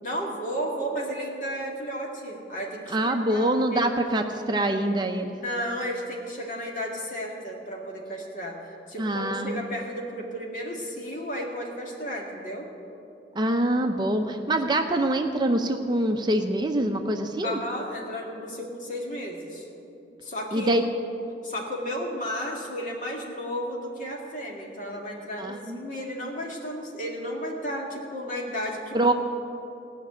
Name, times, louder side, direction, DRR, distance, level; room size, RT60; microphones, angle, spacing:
voice 1, 0.0-3.9 5.4-8.6 8.9-12.7 17.4-19.7 20.2-20.7 21.4-29.0, equal, 45° left, -1 dB, 2.1 m, -33 dB
voice 2, 2.9-5.3 9.0-9.6 13.4-17.6 20.5-20.8 25.4-25.8 28.9-29.1, right 1 dB, 25° right, 5 dB, 0.6 m, -25 dB
16.5 x 6.1 x 9.6 m, 2.8 s
head